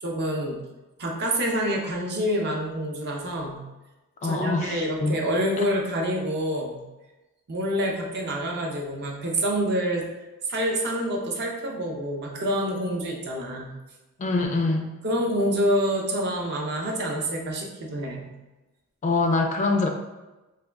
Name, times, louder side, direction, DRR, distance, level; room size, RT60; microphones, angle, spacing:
voice 1, 0.0-0.6 1.0-3.6 4.2-6.8 7.5-10.0 10.5-13.8 15.0-18.3, equal, 50° right, 0 dB, 0.6 m, -27 dB
voice 2, 4.2-5.2 14.2-14.9 19.0-19.9, left 3 dB, 30° left, 3 dB, 0.3 m, -24 dB
3.4 x 2.2 x 3.4 m, 1.1 s
head